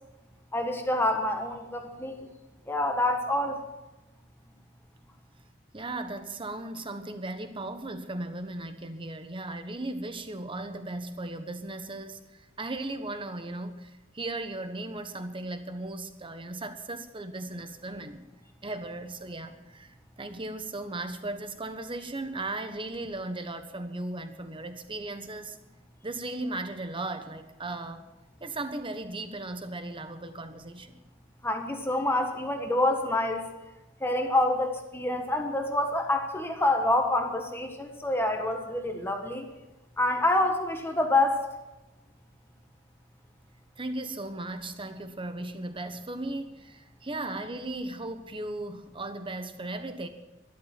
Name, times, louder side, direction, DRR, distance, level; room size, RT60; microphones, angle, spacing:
voice 1, 0.5-2.3 2.7-3.6 31.4-33.5 34.0-39.5 40.0-41.5, left 1 dB, 10° left, 4 dB, 1.4 m, -27 dB
voice 2, 5.7-18.2 18.6-25.6 26.0-28.1 28.4-31.0 43.8-50.1, right 2 dB, 25° right, 9 dB, 1.2 m, -37 dB
13.0 x 12.0 x 7.6 m, 1.0 s
head